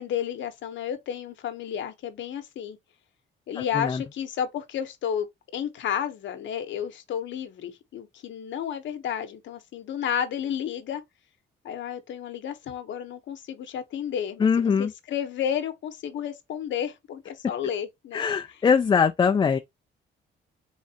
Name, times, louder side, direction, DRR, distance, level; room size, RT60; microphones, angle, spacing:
voice 1, 0.0-2.8 3.5-5.3 5.5-11.0 11.6-18.3, left 9 dB, 70° left, 0.9 m, -32 dB
voice 2, 14.4-14.9 18.1-19.6, left 6 dB, 25° left, 0.3 m, -22 dB
3.6 x 3.2 x 2.8 m
cardioid pair, 90°, 20 cm